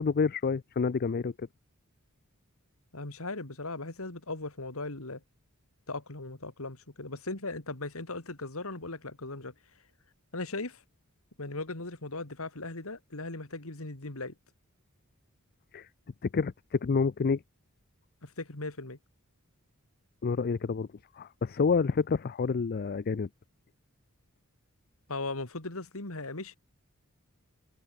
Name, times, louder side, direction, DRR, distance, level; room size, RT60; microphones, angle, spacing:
voice 1, 0.0-1.5 15.7-15.9 16.2-17.4 20.2-20.9 21.2-23.3, left 5 dB, 45° left, 0.4 m, -28 dB
voice 2, 2.9-5.2 5.9-9.5 10.3-10.8 11.4-14.3 18.2-19.0 25.1-26.6, left 2 dB, 65° left, 2.8 m, -38 dB
head